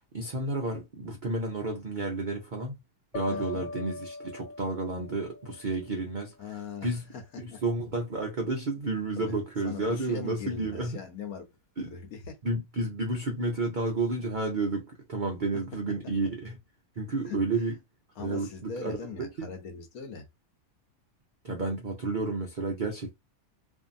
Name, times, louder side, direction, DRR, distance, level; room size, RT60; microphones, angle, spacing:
voice 1, 0.0-2.7 3.1-7.0 7.4-11.0 11.8-12.0 12.4-16.6 17.0-17.7 18.2-19.5 21.4-23.1, right 2 dB, 80° right, 0.4 m, -31 dB
sound 1, 3.1-6.2, left 2 dB, 85° left, 1.4 m, -40 dB
voice 2, 3.3-3.7 6.4-7.6 9.2-9.3 9.6-11.5 11.8-12.4 17.3-17.7 18.2-20.2, left 5 dB, 65° left, 1.2 m, -41 dB
2.7 x 2.6 x 2.5 m
omnidirectional pair, 1.7 m